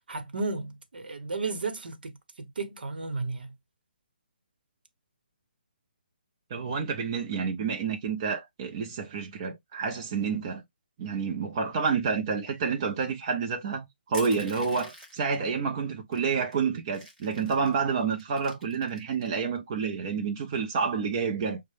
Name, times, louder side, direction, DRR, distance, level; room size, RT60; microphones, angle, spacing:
voice 1, 0.1-3.5, right 3 dB, 70° right, 0.9 m, -34 dB
voice 2, 6.5-10.6 11.0-21.6, right 5 dB, 25° right, 0.5 m, -29 dB
Crushing, 14.1-15.3 16.1-16.2 16.5-17.7 18.2-19.3, equal, 5° right, 1.2 m, -45 dB
6.3 x 2.1 x 3.2 m
hypercardioid pair, 170°, 5 cm